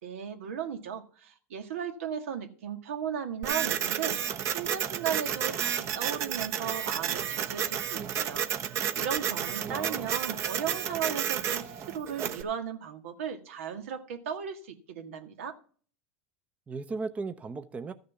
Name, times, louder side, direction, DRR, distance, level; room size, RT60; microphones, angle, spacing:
voice 1, 0.0-8.5 9.0-15.6, right 8 dB, 85° right, 1.9 m, -36 dB
Printer, 3.4-12.4, right 9 dB, 40° right, 1.0 m, -31 dB
voice 2, 9.6-10.1 16.7-17.9, right 4 dB, 20° right, 0.7 m, -36 dB
13.5 x 6.7 x 5.7 m
supercardioid pair, 120°, 7 cm